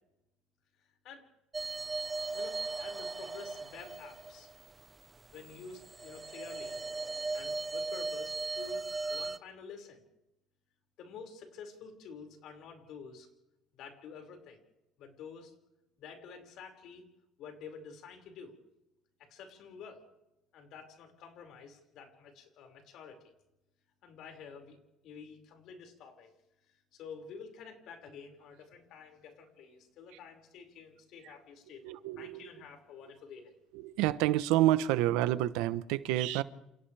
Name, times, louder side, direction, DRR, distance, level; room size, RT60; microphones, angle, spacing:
sound 1, 1.5-4.8 5.4-9.4, right 3 dB, 20° right, 0.7 m, -38 dB
voice 1, 2.3-4.5 5.3-6.8 7.3-10.0 11.0-13.3 13.7-14.6 15.0-15.5 16.0-17.0 17.4-18.6 19.3-20.0 20.5-23.3 24.0-24.8 25.0-26.3 26.9-33.5, left 5 dB, 60° left, 5.7 m, -49 dB
voice 2, 31.8-32.4 33.7-36.4, right 14 dB, 90° right, 1.0 m, -28 dB
29.5 x 29.0 x 3.5 m
cardioid pair, 130°, 0 cm